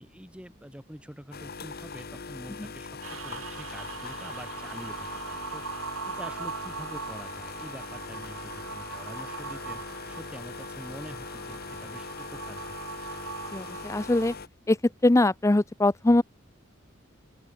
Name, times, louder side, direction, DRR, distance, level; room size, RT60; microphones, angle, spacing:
voice 1, 0.0-3.0 3.2-5.8 6.0-12.6, equal, 5° right, 4.4 m, -45 dB
sound 1, 1.3-14.5, left 4 dB, 50° left, 1.2 m, -41 dB
sound 2, 3.0-14.4, right 5 dB, 85° right, 1.3 m, -40 dB
voice 2, 13.5-14.3 14.7-14.8 15.0-16.2, left 2 dB, 15° left, 0.5 m, -22 dB
open air
head